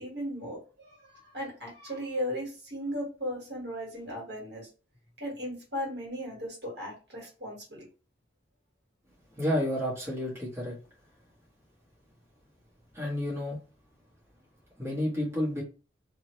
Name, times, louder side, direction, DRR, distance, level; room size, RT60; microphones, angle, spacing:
voice 1, 0.0-4.7 5.2-7.8, equal, 65° right, -2 dB, 1.8 m, -36 dB
voice 2, 9.4-10.8 12.9-13.6 14.8-15.6, left 1 dB, 15° right, -7 dB, 1.3 m, -30 dB
2.8 x 2.7 x 3.1 m, 0.34 s
head